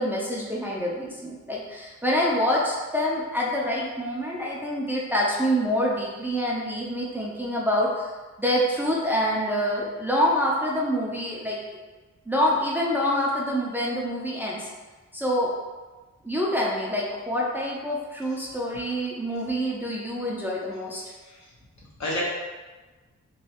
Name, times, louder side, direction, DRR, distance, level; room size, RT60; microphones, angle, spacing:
voice 1, 0.0-8.1 8.4-11.6 12.3-14.7 15.1-15.5 16.2-21.0, equal, 5° right, -5 dB, 0.5 m, -26 dB
voice 2, 21.0-21.5 22.0-22.2, left 1 dB, 65° left, -5 dB, 1.0 m, -32 dB
3.1 x 2.7 x 2.8 m, 1.3 s
wide cardioid pair, 105°, 30 cm